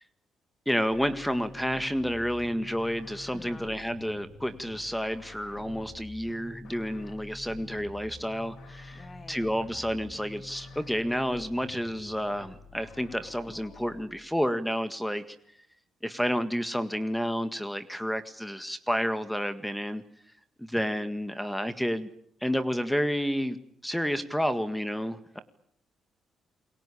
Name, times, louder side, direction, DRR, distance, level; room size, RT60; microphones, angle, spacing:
voice 1, 0.7-15.2 16.0-20.0 20.6-22.1 22.4-23.6 23.8-25.4, equal, 5° left, 11 dB, 1.8 m, -30 dB
sound 1, 0.9-14.1, left 2 dB, 70° left, 4.6 m, -47 dB
voice 2, 3.3-3.7 8.9-9.5, left 3 dB, 25° left, 10 dB, 2.8 m, -47 dB
28.5 x 22.0 x 8.6 m, 0.70 s
cardioid pair, 90°, 0 cm